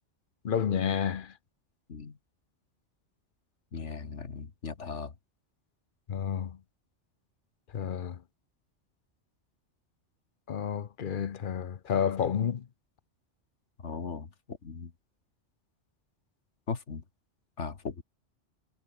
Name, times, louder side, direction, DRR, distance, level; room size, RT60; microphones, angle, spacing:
voice 1, 0.4-1.3 6.1-6.6 7.7-8.2 10.5-12.7, left 8 dB, 50° left, 0.9 m, -30 dB
voice 2, 3.7-5.1 13.8-14.9 16.7-17.0 17.6-18.0, left 5 dB, 75° left, 2.2 m, -38 dB
omnidirectional pair, 1.2 m